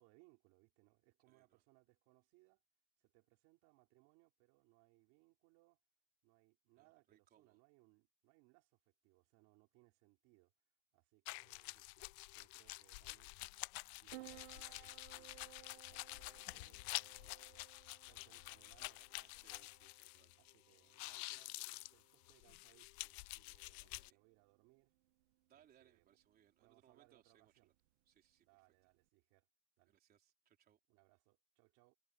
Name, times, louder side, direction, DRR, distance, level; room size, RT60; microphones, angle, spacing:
voice 1, 0.0-2.6 3.0-5.8 6.2-10.5 10.9-13.3 14.0-17.7 18.0-24.9 25.5-26.1 26.6-27.7 28.4-29.5 29.8-30.0 30.9-31.9, right 25 dB, 55° right, 4.8 m, -72 dB
voice 2, 1.3-1.6 6.8-7.6 11.7-12.0 14.0-14.1 19.2-20.6 21.0-21.5 23.8-24.2 25.5-27.7 28.1-28.5 29.9-30.8, right 10 dB, 25° right, 3.9 m, -72 dB
sound 1, 11.3-20.5 20.8-24.1, left 25 dB, 65° left, 0.5 m, -49 dB
Piano, 14.1-29.1, right 18 dB, 70° right, 1.3 m, -63 dB
supercardioid pair, 165°, 34 cm